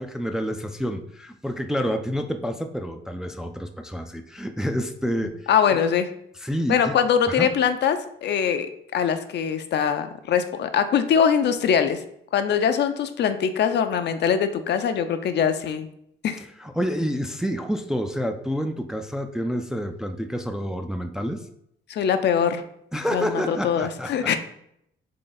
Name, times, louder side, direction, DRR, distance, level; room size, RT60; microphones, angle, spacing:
voice 1, 0.0-5.4 6.4-7.0 7.3-7.5 16.6-21.4 22.9-24.3, equal, 5° right, 6 dB, 0.3 m, -28 dB
voice 2, 5.5-6.1 6.7-8.7 8.9-12.0 12.3-15.9 16.2-16.4 21.9-22.6 23.1-24.4, left 7 dB, 60° left, 9 dB, 0.5 m, -22 dB
3.8 x 3.4 x 3.9 m, 0.74 s
cardioid pair, 90°, 20 cm